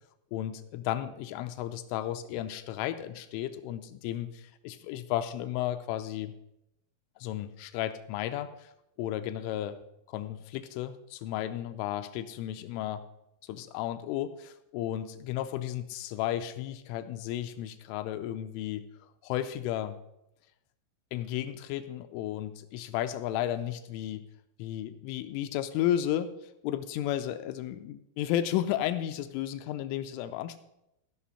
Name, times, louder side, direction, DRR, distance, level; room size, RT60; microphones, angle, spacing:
voice 1, 0.3-6.3 7.2-8.7 9.0-9.8 10.1-13.0 13.5-20.0 21.1-24.2 24.6-30.6, left 12 dB, 85° left, 10 dB, 3.0 m, -33 dB
16.0 x 5.9 x 5.6 m, 0.85 s
omnidirectional pair, 5.8 m